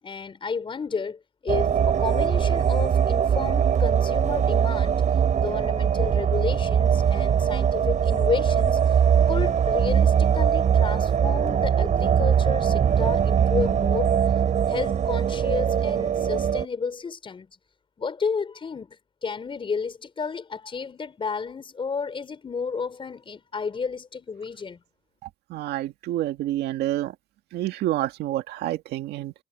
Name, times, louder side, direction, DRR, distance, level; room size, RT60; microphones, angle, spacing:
voice 1, 0.0-5.0 5.4-8.8 9.3-14.2 14.7-17.5 18.0-24.8, left 5 dB, 30° left, 5.2 m, -32 dB
sound 1, 1.5-16.7, right 8 dB, 45° right, 3.9 m, -21 dB
voice 2, 25.5-27.1 27.5-29.3, right 14 dB, 75° right, 1.9 m, -28 dB
cardioid pair, 110°, 17 cm